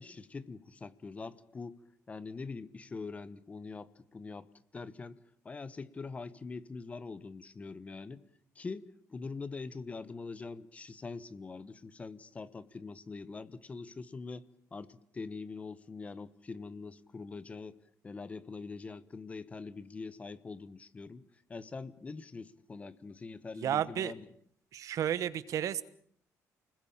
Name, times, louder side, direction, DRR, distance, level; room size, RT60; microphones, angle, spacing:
voice 1, 0.0-1.8 2.1-4.5 4.7-5.2 5.4-8.2 8.5-17.8 18.0-21.2 21.5-24.3, left 4 dB, 20° left, 16 dB, 1.1 m, -43 dB
voice 2, 23.6-24.1 24.7-25.8, right 10 dB, 60° right, 16 dB, 1.3 m, -32 dB
30.0 x 20.5 x 8.7 m, 0.65 s
cardioid pair, 170°, 6 cm